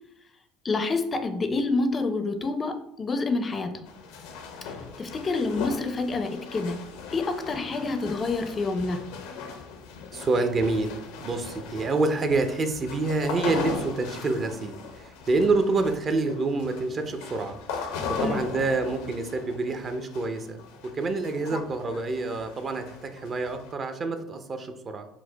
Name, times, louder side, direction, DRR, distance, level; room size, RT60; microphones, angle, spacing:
voice 1, 0.6-3.9 4.6-6.8 7.1-9.0 18.2-18.4, left 3 dB, 30° left, 8 dB, 0.5 m, -28 dB
sound 1, 3.9-23.7, left 5 dB, 75° left, 0.6 m, -38 dB
voice 2, 10.1-25.1, right 3 dB, 40° right, 7 dB, 0.5 m, -27 dB
4.5 x 2.1 x 3.9 m, 0.76 s
hypercardioid pair, 75°, 0 cm